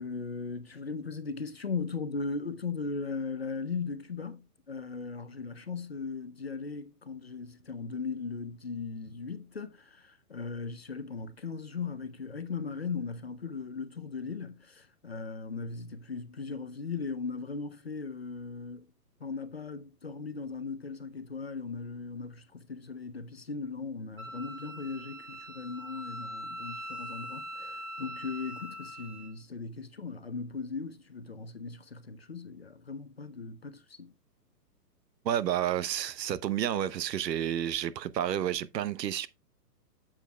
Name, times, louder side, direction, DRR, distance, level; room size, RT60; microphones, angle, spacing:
voice 1, 0.0-18.9 19.2-34.1, left 4 dB, 40° left, 0.4 m, -38 dB
Wind instrument woodwind instrument, 24.2-29.3, equal, 55° right, 4.4 m, -42 dB
voice 2, 35.2-39.3, right 10 dB, 85° right, 0.8 m, -30 dB
9.0 x 7.3 x 2.2 m
hypercardioid pair, 175°, 49 cm